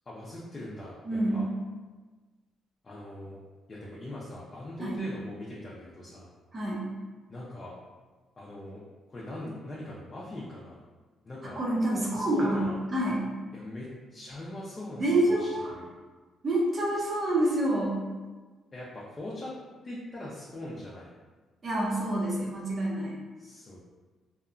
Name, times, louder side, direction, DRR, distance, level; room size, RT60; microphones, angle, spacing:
voice 1, 0.1-1.5 2.8-3.4 3.7-6.3 7.3-7.7 8.4-8.8 9.1-10.8 11.2-11.6 12.1-12.8 13.5-15.9 18.7-19.5 19.8-21.1 23.4-23.8, left 1 dB, 30° left, -6 dB, 0.5 m, -41 dB
voice 2, 1.0-1.4 4.8-5.0 6.5-6.9 11.4-12.7 12.9-13.3 15.0-15.8 16.4-18.0 21.6-23.1, right 1 dB, 40° right, -4 dB, 0.8 m, -27 dB
2.8 x 2.2 x 2.5 m, 1.3 s
cardioid pair, 90°, 0 cm